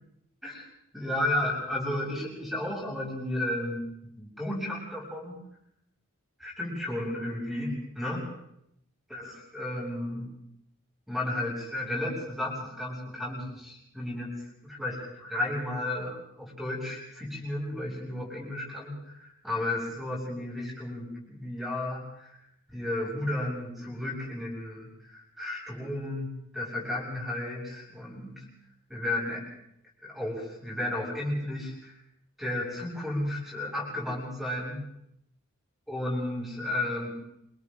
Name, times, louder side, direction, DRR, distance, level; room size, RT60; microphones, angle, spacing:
voice 1, 0.9-3.9 4.2-5.4 6.4-8.3 9.1-10.3 11.1-22.3 22.7-28.5 28.9-29.4 30.0-32.0 32.4-34.8 35.9-37.1, left 1 dB, ahead, -4 dB, 7.4 m, -33 dB
27.5 x 27.5 x 3.9 m, 0.77 s
head